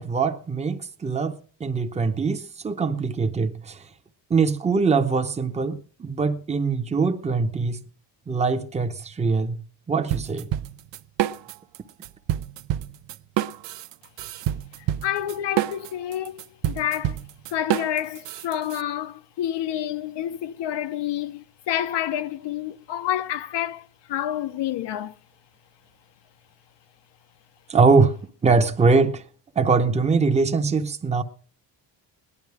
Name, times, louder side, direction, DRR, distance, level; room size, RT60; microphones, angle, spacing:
voice 1, 0.0-3.8 4.3-7.8 8.3-9.6 9.9-10.5 27.7-28.2 28.4-29.2 29.6-31.2, right 4 dB, 15° right, 0.8 m, -22 dB
sound 1, 10.1-11.8 12.0-18.8, right 12 dB, 70° right, 0.7 m, -27 dB
voice 2, 15.0-17.2 17.5-25.1, left 11 dB, 70° left, 0.7 m, -28 dB
18.5 x 11.0 x 4.8 m
cardioid pair, 170°, 45 cm